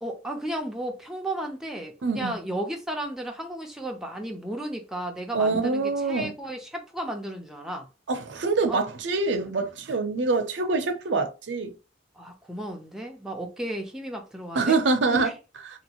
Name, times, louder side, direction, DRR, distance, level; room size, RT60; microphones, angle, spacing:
voice 1, 0.0-7.9 8.7-8.8 11.1-11.2 12.2-14.8 15.1-15.3, right 1 dB, 5° right, 0.6 m, -34 dB
voice 2, 2.0-2.4 5.3-6.3 8.1-11.8 14.5-15.3, right 3 dB, 90° right, 0.6 m, -25 dB
2.9 x 2.6 x 2.9 m
head